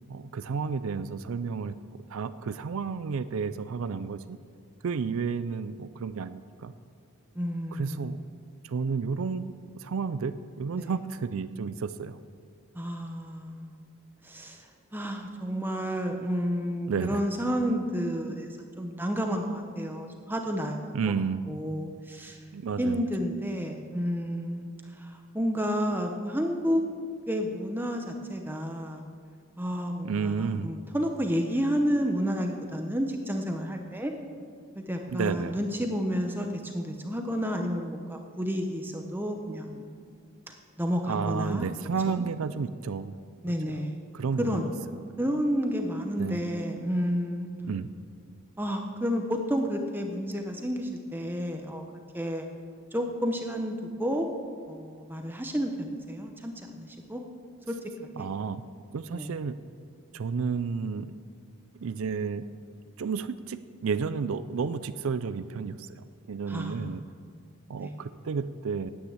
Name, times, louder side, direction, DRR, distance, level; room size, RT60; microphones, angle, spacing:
voice 1, 0.1-1.8 2.1-4.4 4.8-6.7 7.7-8.2 8.6-12.2 16.9-17.2 20.9-21.4 22.5-23.0 30.0-30.7 35.1-35.6 41.1-43.2 43.5-43.8 44.1-44.6 46.2-46.5 47.7-47.9 58.2-58.6 58.9-59.6 60.1-61.1 61.8-62.4 63.0-67.0 67.7-68.9, right 5 dB, 70° right, 13 dB, 0.4 m, -31 dB
voice 2, 7.3-8.3 10.7-11.0 12.7-13.8 14.2-14.7 14.9-20.9 21.5-22.4 22.8-24.7 25.0-26.8 27.3-29.0 29.6-34.1 34.9-39.9 40.5-41.7 42.1-42.2 43.4-43.9 44.4-44.7 45.2-47.5 48.6-51.8 52.1-52.5 52.9-54.3 54.7-57.2 57.7-57.9 58.2-58.3 59.1-59.3 66.5-67.0 67.8-67.9, equal, 10° right, 3 dB, 0.7 m, -31 dB
9.9 x 8.9 x 8.1 m, 2.1 s
head